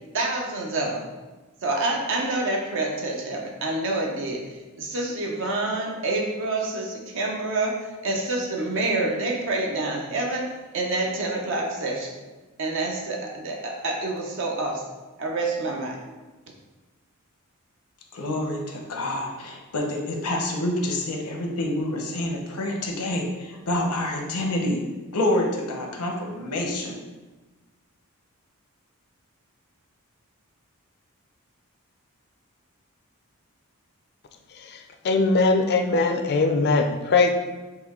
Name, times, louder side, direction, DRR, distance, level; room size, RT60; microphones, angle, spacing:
voice 1, 0.1-1.0 1.6-4.4 4.8-10.4 10.7-12.1 12.6-14.8 15.2-16.0, right 2 dB, 55° right, 0 dB, 0.6 m, -27 dB
voice 2, 18.1-24.8 25.1-27.0, left 1 dB, 90° left, 1 dB, 0.8 m, -27 dB
voice 3, 34.6-37.3, left 3 dB, 45° left, 5 dB, 0.4 m, -21 dB
5.7 x 2.2 x 3.6 m, 1.2 s
head